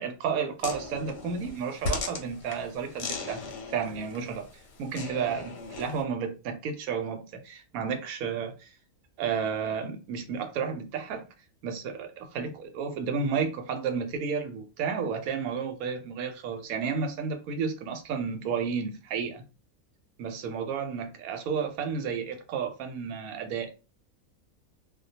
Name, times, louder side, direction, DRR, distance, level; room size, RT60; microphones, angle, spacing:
voice 1, 0.0-4.5 4.8-8.7 9.2-11.2 11.6-19.5 20.2-23.7, right 6 dB, 80° right, 1.0 m, -32 dB
sound 1, 0.6-6.0, left 4 dB, 60° left, 0.7 m, -38 dB
2.3 x 2.2 x 2.7 m
omnidirectional pair, 1.5 m